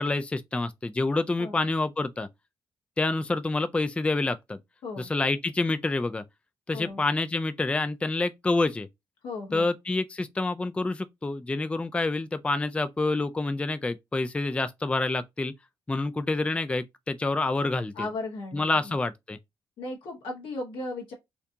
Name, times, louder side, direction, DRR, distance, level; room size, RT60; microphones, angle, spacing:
voice 1, 0.0-2.3 3.0-4.6 5.0-6.2 6.7-8.9 9.5-15.5 15.9-18.1 18.5-19.4, left 2 dB, 15° left, 0.3 m, -27 dB
voice 2, 9.2-9.7 17.9-19.0 19.8-21.1, left 2 dB, 85° left, 1.4 m, -36 dB
4.4 x 2.6 x 2.7 m
cardioid pair, 75°, 9 cm